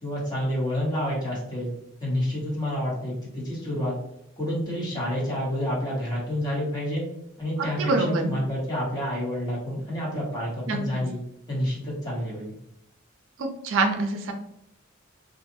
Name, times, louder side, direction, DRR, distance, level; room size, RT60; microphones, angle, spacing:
voice 1, 0.0-1.7 2.0-4.0 4.4-7.0 7.4-11.2 11.5-12.5, equal, 20° left, -6 dB, 1.1 m, -29 dB
voice 2, 7.8-8.3 10.7-10.8 13.4-14.3, right 3 dB, 90° right, 4 dB, 0.5 m, -25 dB
2.5 x 2.3 x 2.7 m, 0.79 s
head